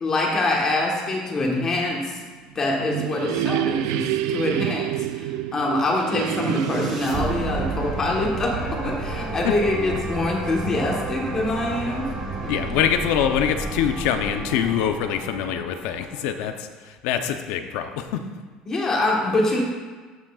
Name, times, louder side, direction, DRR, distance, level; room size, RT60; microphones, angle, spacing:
voice 1, 0.0-2.2 2.5-12.1 18.7-19.6, left 2 dB, 25° left, -1 dB, 1.3 m, -25 dB
sound 1, 2.4-9.1, right 13 dB, 85° right, 0.3 m, -28 dB
sound 2, 6.2-16.4, right 3 dB, 30° right, 1.2 m, -31 dB
voice 2, 12.5-18.2, left 9 dB, 75° left, 7 dB, 0.7 m, -24 dB
13.0 x 6.3 x 2.4 m, 1.4 s
cardioid pair, 165°, 2 cm